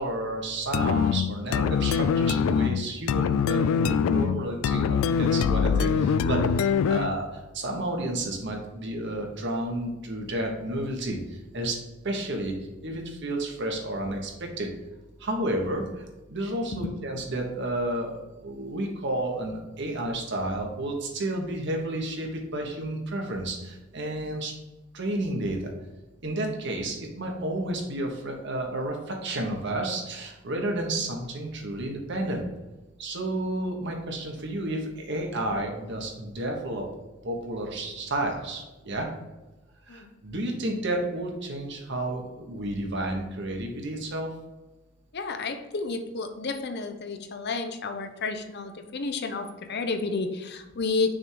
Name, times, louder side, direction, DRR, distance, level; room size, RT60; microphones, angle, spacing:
voice 1, 0.0-7.3 7.5-11.8 12.0-12.5 12.8-14.7 15.2-18.2 18.4-24.5 24.9-25.7 26.2-32.4 33.0-36.8 37.2-39.1 39.9-44.3, right 1 dB, 60° right, 1 dB, 1.3 m, -31 dB
sound 1, 0.7-7.2, left 6 dB, 85° left, 0.3 m, -24 dB
voice 2, 45.1-51.1, left 4 dB, 55° left, 6 dB, 0.7 m, -31 dB
6.3 x 3.6 x 4.7 m, 1.1 s
head